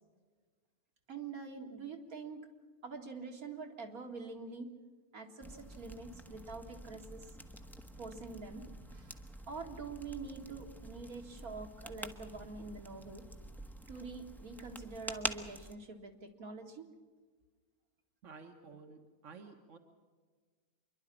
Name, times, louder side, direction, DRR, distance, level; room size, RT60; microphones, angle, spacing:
voice 1, 1.1-2.5 2.8-4.7 5.1-7.3 8.0-8.7 8.9-9.2 9.5-13.3 13.9-16.9, right 4 dB, 70° right, 2 dB, 2.4 m, -45 dB
sound 1, 5.4-15.8, equal, ahead, 0.8 m, -47 dB
voice 2, 18.2-19.8, right 4 dB, 55° right, 3 dB, 1.6 m, -53 dB
26.5 x 11.5 x 10.0 m, 1.5 s
omnidirectional pair, 1.6 m